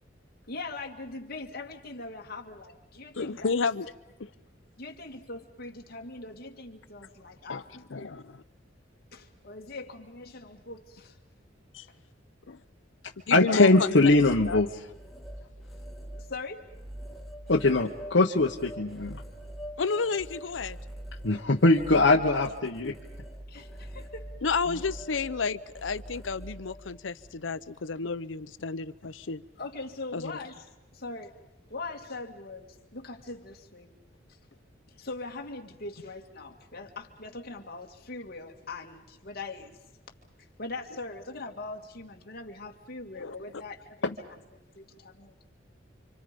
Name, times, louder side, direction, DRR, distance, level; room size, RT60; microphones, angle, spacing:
voice 1, 0.5-3.5 4.8-8.2 9.1-11.2 16.2-16.7 23.5-24.3 29.6-30.7 30.9-31.4 31.7-33.9 34.9-39.8 40.6-44.1 44.5-45.5, left 3 dB, 55° left, 3 dB, 2.2 m, -41 dB
voice 2, 3.1-3.9 4.2-4.3 7.5-7.6 7.9-8.4 11.7-11.9 12.5-12.6 13.3-14.1 14.5-14.6 19.8-20.8 24.4-29.4 30.1-30.3 43.1-43.4, left 4 dB, 90° left, 14 dB, 0.8 m, -31 dB
voice 3, 13.3-14.7 17.5-19.2 21.2-22.9, left 2 dB, 70° left, -1 dB, 1.2 m, -22 dB
sound 1, 13.9-27.3, equal, ahead, 2.2 m, -44 dB
29.5 x 25.5 x 5.3 m, 0.98 s
head